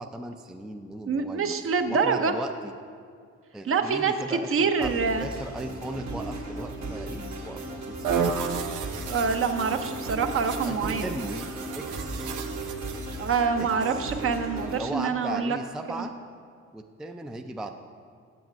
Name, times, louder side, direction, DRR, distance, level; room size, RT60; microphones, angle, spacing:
voice 1, 0.0-2.5 3.5-4.9 5.2-8.3 10.6-11.5 11.8-12.3 13.6-13.7 14.7-16.1 16.7-17.7, right 2 dB, ahead, 6 dB, 0.3 m, -37 dB
voice 2, 1.1-2.3 3.6-5.3 9.1-11.1 13.2-15.6 15.9-16.0, right 5 dB, 45° right, 7 dB, 0.7 m, -26 dB
sound 1, 4.8-14.8, right 2 dB, 65° right, 1.8 m, -36 dB
sound 2, 8.0-13.5, right 6 dB, 80° right, 0.7 m, -33 dB
7.8 x 7.2 x 5.2 m, 2.1 s
cardioid pair, 90°, 30 cm